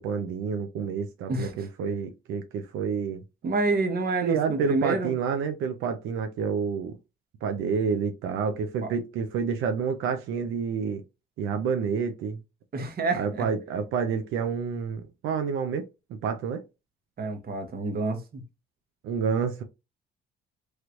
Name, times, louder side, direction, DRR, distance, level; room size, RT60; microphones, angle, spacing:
voice 1, 0.0-3.2 4.2-6.9 7.4-11.0 11.4-12.4 13.2-15.9 16.2-16.6 19.0-19.6, right 6 dB, 85° right, 0.5 m, -29 dB
voice 2, 1.3-1.7 3.4-5.1 8.8-8.9 12.7-13.5 17.2-18.4, right 3 dB, 50° right, 1.0 m, -28 dB
3.1 x 3.0 x 2.5 m
cardioid pair, 90°, 20 cm